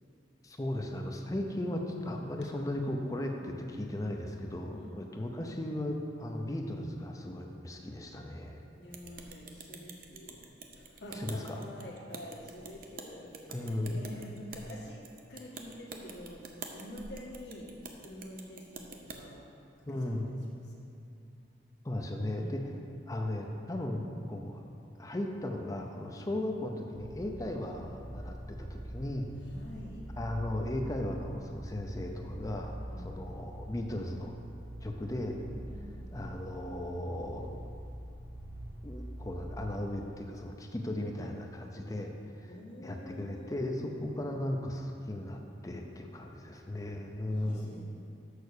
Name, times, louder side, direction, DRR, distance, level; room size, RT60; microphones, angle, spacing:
voice 1, 0.4-8.6 11.1-11.6 13.5-14.0 19.8-20.3 21.8-22.6 23.1-24.6 25.0-29.3 30.2-34.3 34.8-35.4 36.1-37.6 38.8-42.5 42.8-47.7, left 1 dB, 20° left, 2 dB, 0.5 m, -36 dB
voice 2, 8.7-10.4 10.7-15.0 15.3-17.7 18.0-19.4 19.8-20.9 22.3-22.6 29.5-30.0 32.9-33.1 35.6-35.9 42.4-43.7 46.3-46.9 47.3-47.8, left 1 dB, 75° left, -3 dB, 1.6 m, -47 dB
sound 1, 8.9-19.2, right 4 dB, 55° right, 0.7 m, -47 dB
sound 2, 26.9-39.7, equal, 10° right, 1.0 m, -44 dB
6.5 x 5.8 x 6.6 m, 2.6 s
head